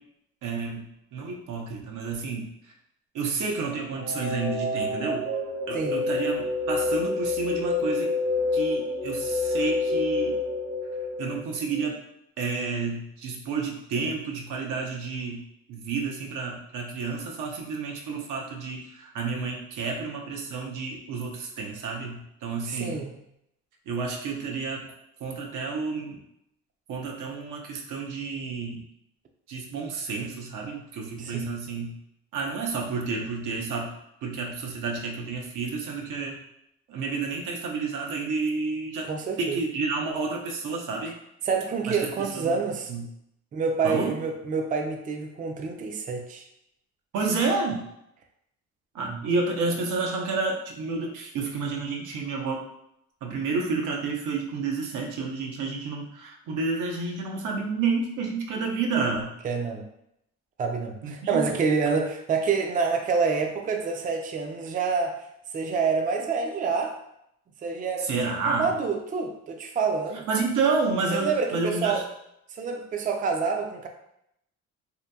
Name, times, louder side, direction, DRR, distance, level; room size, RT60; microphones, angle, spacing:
voice 1, 0.4-0.9 1.1-2.5 3.1-5.3 5.7-8.1 8.5-10.4 11.2-12.0 12.4-15.4 15.7-23.0 23.9-24.8 25.2-26.2 26.9-28.8 29.5-31.9 32.3-33.9 34.2-36.4 36.9-39.1 39.4-41.1 41.9-42.6 42.9-43.1 43.8-44.1 47.1-47.8 48.9-52.6 53.2-59.3 61.0-61.4 68.0-68.7 70.3-72.0, right 4 dB, 85° right, 1 dB, 0.6 m, -30 dB
sound 1, 3.9-11.9, left 3 dB, 65° right, 1.0 m, -28 dB
voice 2, 5.7-6.1 22.6-23.2 31.2-31.6 39.0-39.6 41.4-42.9 43.5-46.4 49.1-49.2 59.4-59.8 60.6-65.2 65.5-66.9 67.6-68.1 68.5-70.2 71.1-72.0 72.5-73.9, right 5 dB, 30° right, 3 dB, 0.3 m, -27 dB
2.8 x 2.6 x 2.2 m, 0.79 s
cardioid pair, 90°, 30 cm